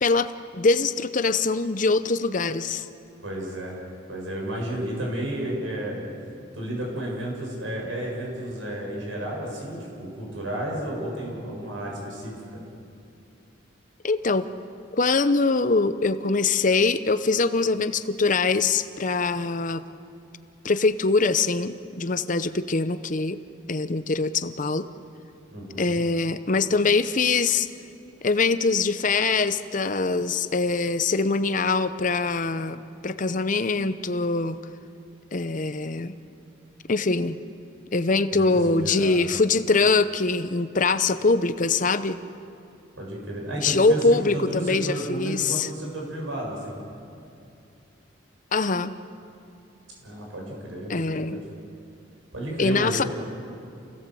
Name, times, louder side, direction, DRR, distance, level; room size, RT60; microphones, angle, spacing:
voice 1, 0.0-2.9 14.0-14.5 14.9-19.8 20.6-23.4 23.7-24.9 25.8-27.7 28.2-34.6 35.3-36.2 36.9-37.4 37.9-42.2 43.6-45.7 48.5-48.9 50.9-51.4 52.6-53.0, left 3 dB, 40° left, 12 dB, 0.7 m, -23 dB
voice 2, 3.2-3.8 4.1-6.1 6.5-12.6 25.5-26.0 38.3-39.2 43.0-46.8 50.0-50.9 51.3-51.4 52.3-53.1, right 1 dB, 80° right, -2 dB, 6.9 m, -32 dB
28.5 x 17.5 x 7.7 m, 2.6 s
head